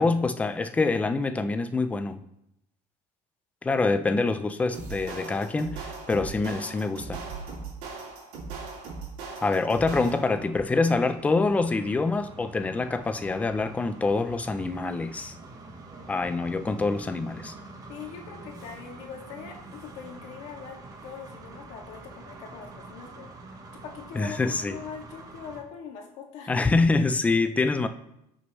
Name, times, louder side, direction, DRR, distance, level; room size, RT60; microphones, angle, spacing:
voice 1, 0.0-2.2 3.6-7.2 9.4-15.3 16.1-17.5 24.2-24.8 26.5-27.9, left 3 dB, 10° left, 10 dB, 0.4 m, -25 dB
sound 1, 4.7-10.4, right 4 dB, 75° right, 2.8 m, -39 dB
sound 2, 9.7-25.6, right 2 dB, 25° right, 1.1 m, -46 dB
voice 2, 17.9-26.5, left 6 dB, 60° left, 1 dB, 2.0 m, -42 dB
17.5 x 6.3 x 3.1 m, 0.81 s
cardioid pair, 165°, 14 cm